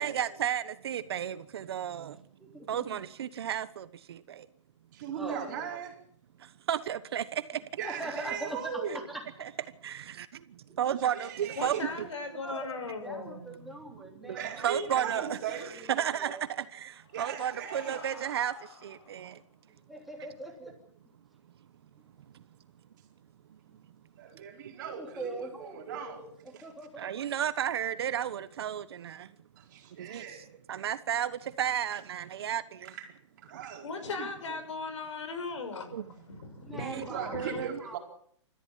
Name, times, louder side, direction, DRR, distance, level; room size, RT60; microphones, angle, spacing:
voice 1, 0.0-2.2 2.7-4.5 6.4-7.6 8.0-8.1 9.4-9.5 9.8-10.0 10.8-12.1 13.2-13.5 14.2-15.6 15.9-19.4 22.3-22.4 23.5-23.6 24.6-24.7 25.9-26.0 27.0-29.3 30.0-32.9 35.9-36.0 36.7-37.8, right 10 dB, 55° right, 1.2 m, -33 dB
voice 2, 2.1-2.9 5.1-5.8 7.8-9.2 12.4-16.4 19.9-20.7 24.7-27.2 36.6-38.0, right 1 dB, ahead, 3.1 m, -42 dB
voice 3, 4.9-5.9 7.8-9.0 11.1-11.9 14.3-15.7 17.1-18.1 24.2-26.2 26.6-26.7 29.6-30.5 32.8-33.2 33.4-33.9 34.2-34.6 37.1-38.0, right 7 dB, 40° right, 4.5 m, -39 dB
voice 4, 11.6-13.7 33.8-36.0 36.3-37.6, left 4 dB, 75° left, 6.5 m, -38 dB
sound 1, 16.6-19.5, left 5 dB, 50° left, 7.0 m, -51 dB
26.5 x 14.0 x 7.5 m
hypercardioid pair, 165°, 16 cm